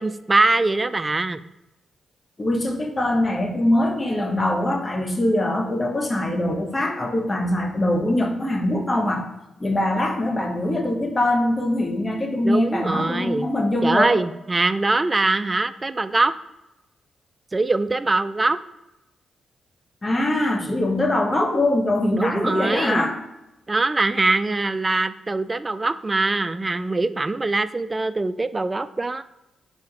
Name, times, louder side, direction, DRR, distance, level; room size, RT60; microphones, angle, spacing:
voice 1, 0.0-1.4 12.4-13.5 13.8-16.3 17.5-18.6 20.5-20.7 22.1-23.1 23.7-29.2, right 3 dB, 25° right, 14 dB, 0.4 m, -22 dB
voice 2, 2.4-9.3 9.6-14.2 20.0-23.2, left 1 dB, 30° left, 3 dB, 1.2 m, -22 dB
6.4 x 4.3 x 3.6 m, 0.95 s
cardioid pair, 60°, 0 cm